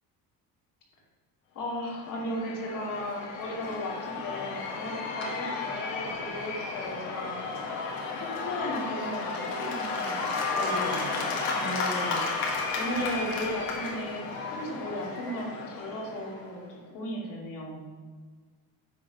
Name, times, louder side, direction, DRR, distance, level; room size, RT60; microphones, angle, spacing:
voice 1, 1.5-7.3 8.2-17.9, equal, 60° left, -3 dB, 2.6 m, -36 dB
Cheering / Applause / Crowd, 1.8-16.6, left 4 dB, 85° left, 1.6 m, -33 dB
9.6 x 4.0 x 5.4 m, 1.5 s
cardioid pair, 135°, 35 cm